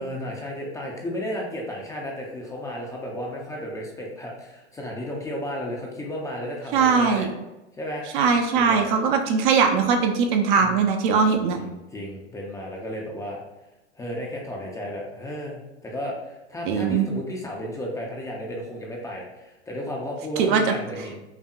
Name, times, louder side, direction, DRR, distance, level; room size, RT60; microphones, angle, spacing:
voice 1, 0.0-7.3 7.8-8.1 8.5-8.9 10.6-10.8 11.5-13.4 13.9-21.2, equal, 10° left, -2 dB, 0.5 m, -33 dB
voice 2, 6.7-7.3 8.1-11.6 16.7-17.1 20.4-20.6, right 5 dB, 45° right, 5 dB, 0.6 m, -20 dB
5.6 x 2.1 x 2.4 m, 0.98 s
hypercardioid pair, 105°, 35 cm